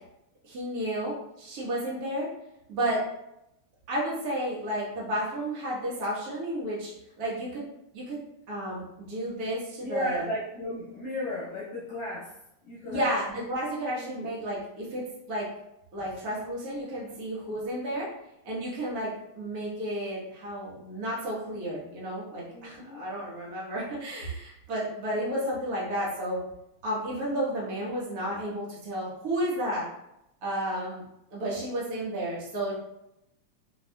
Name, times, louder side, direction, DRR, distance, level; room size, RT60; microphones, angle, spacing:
voice 1, 0.4-2.3 2.7-3.0 3.9-7.7 7.9-8.2 8.5-10.3 12.8-15.5 15.9-18.1 18.4-26.4 26.8-29.9 30.4-31.0 31.3-32.7, right 1 dB, 55° right, -6 dB, 1.0 m, -32 dB
voice 2, 9.8-12.3 12.6-13.1 14.0-14.3 22.5-23.0, left 1 dB, 65° left, -7 dB, 1.7 m, -35 dB
4.5 x 3.6 x 2.2 m, 0.84 s
omnidirectional pair, 3.3 m